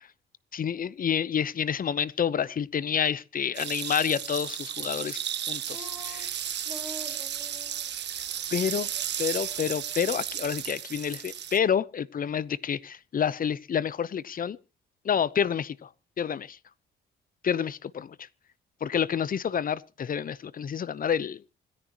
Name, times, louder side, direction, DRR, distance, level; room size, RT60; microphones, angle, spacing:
voice 1, 0.5-5.2 5.5-6.3 8.5-8.9 9.2-14.6 15.0-15.9 16.2-16.6 17.4-18.2 18.8-21.4, left 8 dB, 45° left, 0.9 m, -28 dB
sound 1, 3.5-11.6, right 10 dB, 60° right, 1.3 m, -34 dB
sound 2, 5.7-6.2 6.6-7.8 8.2-8.3 8.7-9.0 9.3-10.1, equal, 5° right, 5.5 m, -45 dB
26.0 x 10.5 x 3.0 m
cardioid pair, 90°, 20 cm